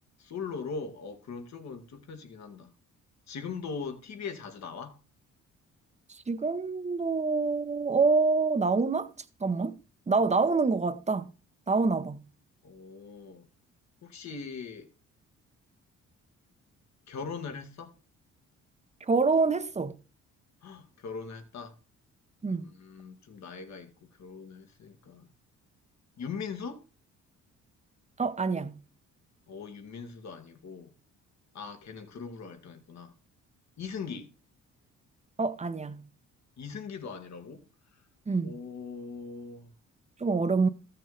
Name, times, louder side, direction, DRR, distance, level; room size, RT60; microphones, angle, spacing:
voice 1, 0.2-2.7 3.3-5.0 12.6-13.5 14.0-14.9 17.1-17.9 20.6-21.7 22.6-25.3 26.2-26.8 29.5-30.9 31.5-33.1 33.8-34.3 36.6-37.6 38.4-39.7, left 5 dB, 65° left, 1.9 m, -40 dB
voice 2, 6.3-9.1 9.4-9.8 10.1-11.3 11.7-12.2 19.1-20.0 22.4-22.7 28.2-28.8 35.4-36.1 38.3-38.6 40.2-40.7, right 4 dB, 20° right, 0.9 m, -26 dB
14.0 x 6.7 x 3.9 m
cardioid pair, 90°, 30 cm